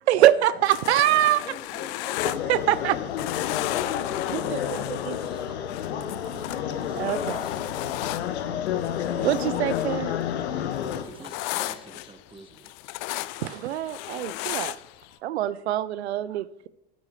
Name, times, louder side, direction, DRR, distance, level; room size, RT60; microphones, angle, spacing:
voice 1, 0.1-1.4 2.5-3.0 4.3-5.2 6.9-7.4 9.2-10.1 13.4-14.7 15.2-16.7, right 13 dB, 85° right, 0.5 m, -24 dB
sound 1, 0.6-2.9 3.2-9.9 10.2-15.1, left 18 dB, 60° left, 0.5 m, -35 dB
voice 2, 0.8-4.8 10.5-11.9, left 3 dB, 15° left, 1.4 m, -45 dB
sound 2, 2.2-11.0, left 9 dB, 85° left, 0.9 m, -30 dB
voice 3, 4.8-8.1 10.8-12.7, right 3 dB, 15° right, 1.0 m, -49 dB
13.0 x 8.4 x 3.1 m
hypercardioid pair, 80°, 32 cm